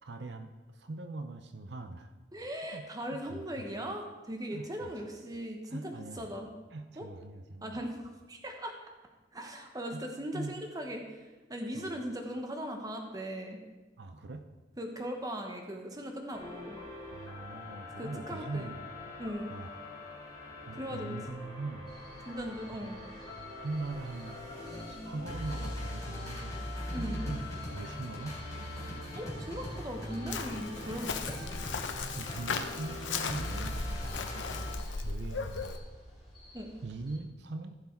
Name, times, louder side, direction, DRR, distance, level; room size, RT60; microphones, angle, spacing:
voice 1, 0.0-2.1 2.7-3.4 4.5-4.9 5.7-6.3 6.7-7.8 9.9-10.0 10.3-10.6 11.7-11.9 14.0-14.5 17.1-18.8 19.5-19.7 20.7-22.0 23.4-24.4 24.9-26.6 26.9-28.4 32.2-35.8 36.8-37.8, right 3 dB, 65° right, 7 dB, 0.6 m, -41 dB
voice 2, 2.3-6.5 7.0-7.1 7.6-8.8 9.3-13.6 14.8-16.8 18.0-18.7 19.2-19.5 20.7-21.2 22.2-23.0 26.9-27.3 28.8-31.4 36.5-36.8, equal, 20° right, 3 dB, 1.1 m, -39 dB
sound 1, 16.3-34.7, left 1 dB, 20° left, 2.8 m, -41 dB
sound 2, 21.9-37.2, left 1 dB, ahead, 3.3 m, -54 dB
Chirp tweet, 30.3-35.8, left 4 dB, 90° left, 0.8 m, -37 dB
15.0 x 6.0 x 4.5 m, 1.2 s
head